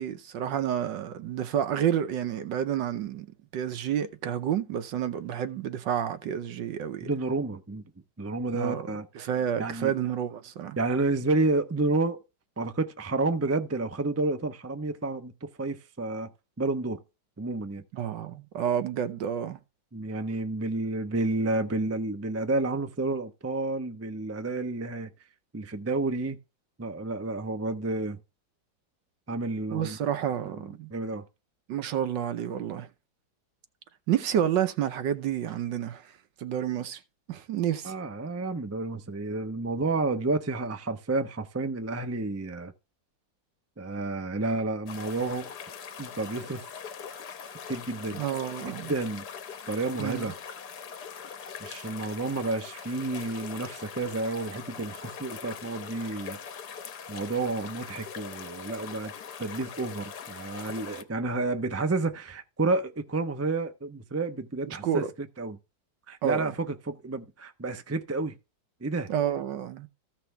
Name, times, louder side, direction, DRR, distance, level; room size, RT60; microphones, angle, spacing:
voice 1, 0.0-3.3 3.5-7.1 8.5-8.9 9.1-10.8 17.9-19.6 29.7-30.9 31.7-32.9 34.1-36.1 36.4-37.0 37.3-37.9 48.2-48.9 50.0-50.3 64.7-65.1 66.2-66.5 69.1-69.9, right 9 dB, 75° right, 1.5 m, -29 dB
voice 2, 7.0-7.8 8.2-9.3 9.5-9.9 10.8-12.2 12.6-16.3 16.6-17.0 17.4-17.8 19.9-25.1 25.5-26.4 26.8-28.2 29.3-30.0 30.5-31.2 37.8-42.7 43.8-45.5 46.0-46.6 47.7-48.2 48.6-49.3 49.7-50.3 51.6-56.4 57.1-59.1 59.4-65.6 66.1-68.4 68.8-69.1, right 2 dB, 20° right, 0.3 m, -30 dB
sound 1, 44.9-61.0, left 7 dB, 60° left, 1.5 m, -42 dB
15.0 x 5.9 x 3.4 m
omnidirectional pair, 2.1 m